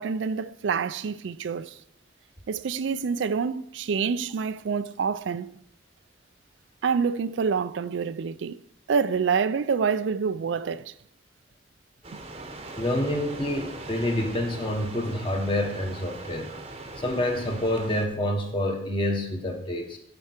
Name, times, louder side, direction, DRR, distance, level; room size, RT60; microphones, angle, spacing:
voice 1, 0.0-1.8 2.5-5.5 6.8-8.6 8.9-10.9, right 6 dB, 80° right, 0.4 m, -27 dB
sound 1, 12.0-18.1, right 2 dB, 30° right, 0.8 m, -40 dB
voice 2, 12.8-16.5 17.0-20.0, left 1 dB, 25° left, 1.3 m, -27 dB
12.0 x 4.6 x 4.4 m
head